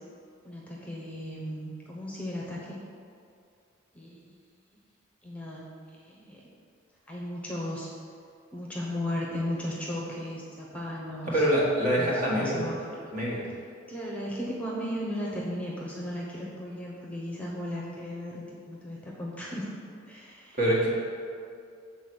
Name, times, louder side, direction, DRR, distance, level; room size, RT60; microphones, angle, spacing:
voice 1, 0.4-2.8 3.9-4.2 5.2-5.7 6.1-6.4 7.1-7.9 8.5-11.4 11.9-13.0 13.9-19.7 20.0-20.6, left 1 dB, 5° left, -4 dB, 0.9 m, -36 dB
voice 2, 11.2-12.6 13.1-13.4 20.6-20.9, equal, 45° right, -5 dB, 1.8 m, -25 dB
7.0 x 4.1 x 6.2 m, 2.4 s
head